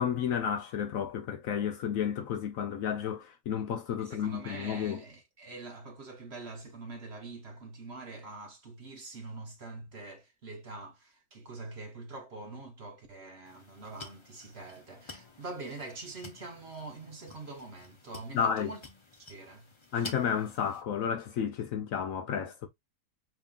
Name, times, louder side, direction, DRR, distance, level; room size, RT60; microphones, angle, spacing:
voice 1, 0.0-5.0 18.3-18.7 19.9-22.7, left 8 dB, 65° left, 0.9 m, -32 dB
voice 2, 4.0-18.9 19.1-19.7, right 3 dB, 45° right, 1.0 m, -44 dB
sound 1, 13.4-20.8, left 3 dB, 35° left, 0.5 m, -50 dB
5.3 x 3.0 x 2.4 m
omnidirectional pair, 1.7 m